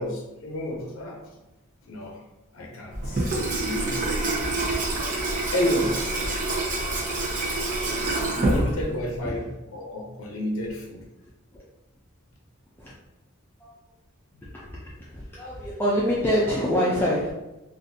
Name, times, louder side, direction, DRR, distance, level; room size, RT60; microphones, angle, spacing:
voice 1, 0.0-1.4 1.8-2.2 2.5-3.3 3.6-4.0 5.5-6.2 8.4-11.0, left 1 dB, 80° left, -1 dB, 0.6 m, -30 dB
Water tap faucet / Sink (filling or washing), 2.9-9.2, right 2 dB, 40° right, 0.8 m, -27 dB
voice 2, 14.4-17.3, equal, 10° left, -6 dB, 0.4 m, -26 dB
3.9 x 2.5 x 2.6 m, 0.97 s
head